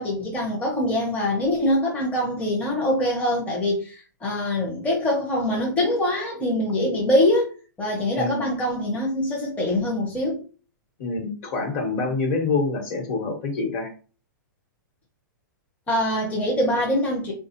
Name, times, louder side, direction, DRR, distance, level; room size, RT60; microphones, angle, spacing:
voice 1, 0.0-7.5 7.8-10.4 15.9-17.3, left 1 dB, 15° left, 0.7 m, -24 dB
voice 2, 8.2-8.5 11.0-13.9, left 3 dB, 45° left, 1.2 m, -26 dB
3.7 x 2.3 x 2.8 m
hypercardioid pair, 140°, 11 cm